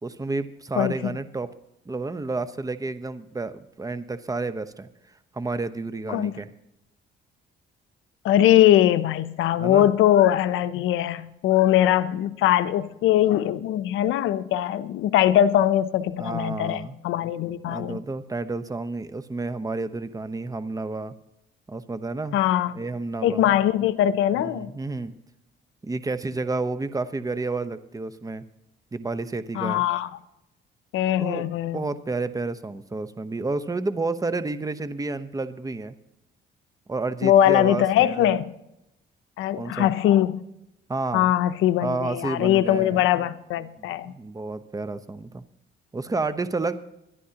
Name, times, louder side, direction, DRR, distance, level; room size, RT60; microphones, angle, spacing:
voice 1, 0.0-1.5 1.9-4.9 5.3-6.5 9.6-9.9 16.2-17.0 17.7-21.1 21.7-22.4 22.7-23.5 24.3-25.1 25.8-28.4 28.9-29.8 31.2-31.5 31.7-35.9 36.9-38.3 39.6-39.9 40.9-41.3 41.8-43.0 43.8-45.4 45.9-46.8, right 3 dB, 15° right, 0.9 m, -30 dB
voice 2, 0.8-1.1 6.1-6.3 8.2-18.0 22.3-22.7 23.2-24.7 29.6-30.1 30.9-31.9 37.2-38.5 39.4-40.4 41.1-44.1, left 12 dB, 90° left, 0.6 m, -21 dB
23.5 x 11.0 x 2.9 m
cardioid pair, 90°, 20 cm